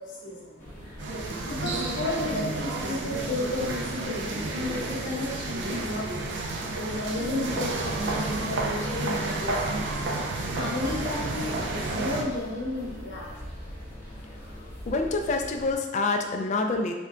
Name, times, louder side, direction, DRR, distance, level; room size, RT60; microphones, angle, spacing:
voice 1, 0.0-6.5 7.0-13.5 13.9-14.0, left 2 dB, 65° left, -3 dB, 0.8 m, -34 dB
sound 1, 0.6-15.7, equal, 10° left, 0.7 m, -42 dB
sound 2, 1.0-12.2, right 2 dB, 65° right, 0.4 m, -31 dB
voice 2, 14.9-16.9, left 3 dB, 35° left, 4 dB, 0.3 m, -26 dB
3.4 x 2.2 x 3.7 m, 1.3 s
head